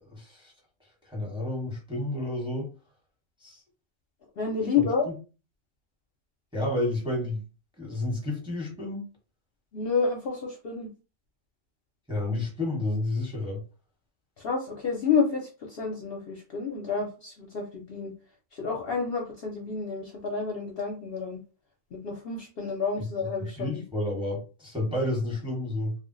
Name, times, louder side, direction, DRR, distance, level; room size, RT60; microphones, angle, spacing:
voice 1, 0.1-0.5 1.0-2.7 3.4-3.6 5.1-5.2 6.5-7.4 7.8-9.1 12.1-13.6 23.0-23.1 23.4-26.0, left 1 dB, 5° right, -1 dB, 0.8 m, -30 dB
voice 2, 4.4-5.1 9.7-10.9 14.4-18.1 18.5-21.4 21.9-23.8, left 5 dB, 55° left, 0 dB, 0.7 m, -29 dB
2.3 x 2.1 x 3.8 m, 0.33 s
omnidirectional pair, 1.4 m